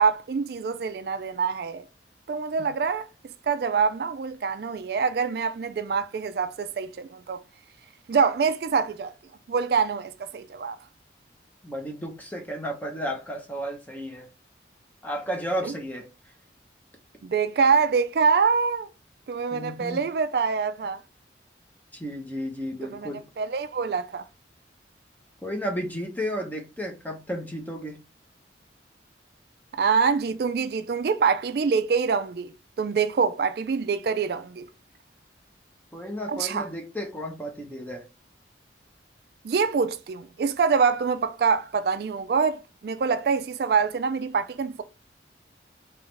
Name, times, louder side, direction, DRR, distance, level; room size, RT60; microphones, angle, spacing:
voice 1, 0.0-1.8 2.3-3.1 3.5-7.4 8.1-9.1 9.5-10.8 15.6-15.7 17.2-18.9 19.3-21.0 22.8-24.2 29.8-32.5 32.8-34.7 36.3-36.7 39.4-44.8, right 5 dB, 55° right, 0.3 m, -25 dB
voice 2, 11.6-14.3 15.0-16.1 19.5-20.0 21.9-23.2 25.4-28.0 35.9-38.0, equal, 10° left, 0.8 m, -33 dB
3.6 x 3.0 x 3.2 m
head